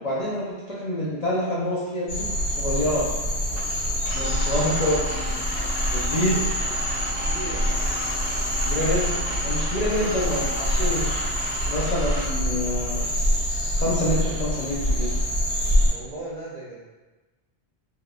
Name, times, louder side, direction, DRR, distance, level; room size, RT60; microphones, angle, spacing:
voice 1, 0.0-3.1 4.2-5.1 5.9-6.4 8.6-11.1 11.7-13.1 13.8-15.1, left 1 dB, 50° left, -8 dB, 0.5 m, -27 dB
sound 1, 2.1-15.9, equal, 80° left, 1.8 m, -25 dB
sound 2, 3.5-12.3, equal, 20° right, 0.8 m, -35 dB
Wind instrument woodwind instrument, 4.1-11.8, equal, 80° right, 0.9 m, -42 dB
voice 2, 7.2-7.7 9.8-10.1 15.9-16.8, right 2 dB, 50° right, -7 dB, 0.5 m, -37 dB
3.6 x 2.2 x 2.3 m, 1.2 s
omnidirectional pair, 1.1 m